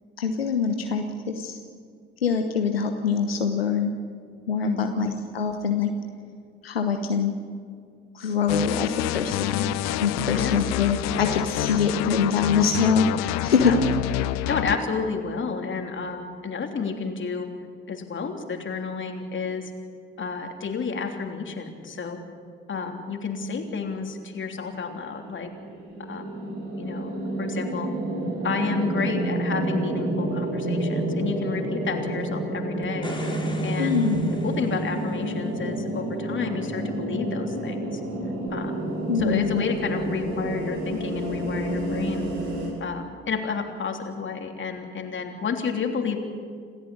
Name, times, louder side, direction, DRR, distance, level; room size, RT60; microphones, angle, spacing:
voice 1, 0.2-1.6 2.2-3.9 4.5-5.9 6.6-7.4 8.1-9.7 10.0-13.7 33.8-34.3 39.1-39.6, left 6 dB, 85° left, 5 dB, 1.0 m, -24 dB
sound 1, 8.5-14.8, left 15 dB, 65° left, 0.8 m, -28 dB
voice 2, 14.5-17.5 17.9-19.7 20.2-22.2 22.7-25.5 26.0-26.3 26.8-27.1 27.4-27.9 28.4-33.1 33.6-34.0 34.4-38.0 38.5-38.7 39.2-42.3 42.8-46.2, left 5 dB, 40° left, 4 dB, 3.3 m, -31 dB
sound 2, 24.9-42.7, right 1 dB, 70° right, 6.2 m, -29 dB
sound 3, 32.8-35.4 38.5-38.6, left 2 dB, 15° left, 4.1 m, -39 dB
27.5 x 15.0 x 8.7 m, 2.1 s
figure-of-eight pair, 45°, 29 cm